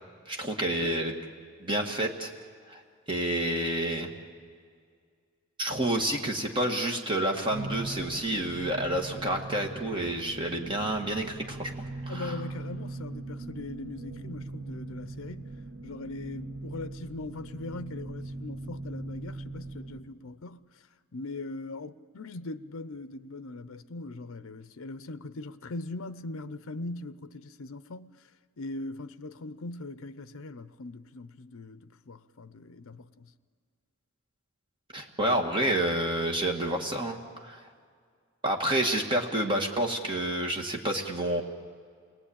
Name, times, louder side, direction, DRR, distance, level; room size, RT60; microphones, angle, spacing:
voice 1, 0.3-1.1 1.6-2.3 2.7-2.8 3.1-4.1 5.6-12.4 34.9-37.7 38.4-41.4, right 1 dB, 20° right, 1.8 m, -29 dB
sound 1, 7.5-20.0, right 2 dB, 75° right, 2.2 m, -40 dB
voice 2, 12.1-15.6 15.8-20.9 21.1-28.3 28.6-33.3, left 2 dB, 60° left, 0.6 m, -40 dB
28.5 x 19.5 x 8.7 m
head